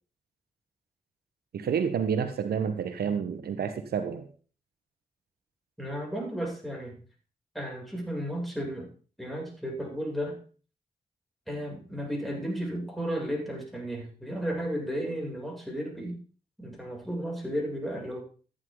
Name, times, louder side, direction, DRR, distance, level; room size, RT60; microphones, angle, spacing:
voice 1, 1.5-4.2, right 7 dB, 85° right, 8 dB, 1.2 m, -29 dB
voice 2, 5.8-7.0 7.5-8.9 9.2-10.4 11.5-16.2 16.6-18.2, equal, ahead, -2 dB, 7.1 m, -33 dB
14.5 x 9.6 x 4.0 m, 0.39 s
cardioid pair, 45°, 16 cm